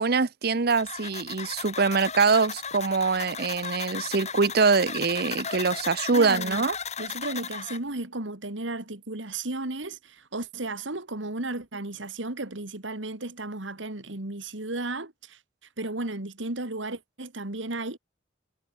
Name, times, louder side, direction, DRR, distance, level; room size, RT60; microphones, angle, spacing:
voice 1, 0.0-6.7, right 4 dB, 55° right, 0.7 m, -24 dB
sound 1, 0.7-7.8, left 6 dB, 35° left, 5.9 m, -36 dB
voice 2, 6.1-6.7 7.0-15.4 15.8-18.0, right 2 dB, 80° right, 2.4 m, -34 dB
head